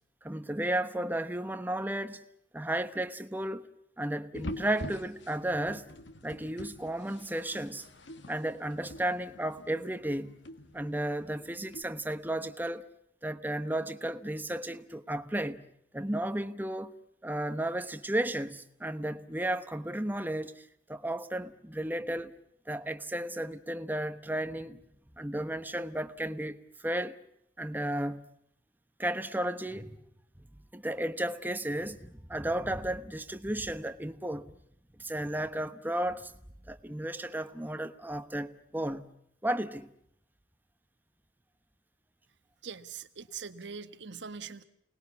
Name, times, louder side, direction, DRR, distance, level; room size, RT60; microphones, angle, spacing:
voice 1, 0.2-2.2 2.5-3.7 4.0-5.8 6.2-7.9 8.3-10.3 10.7-12.9 13.2-15.6 15.9-16.9 17.2-22.3 22.7-24.8 25.2-27.2 27.6-28.3 29.0-30.0 30.7-34.5 35.0-36.3 36.7-39.1 39.4-39.9, right 1 dB, 10° right, 1.1 m, -33 dB
sound 1, 4.3-11.8, left 1 dB, 75° left, 1.8 m, -45 dB
voice 2, 42.6-44.6, right 6 dB, 75° right, 1.3 m, -42 dB
29.5 x 20.0 x 7.1 m
head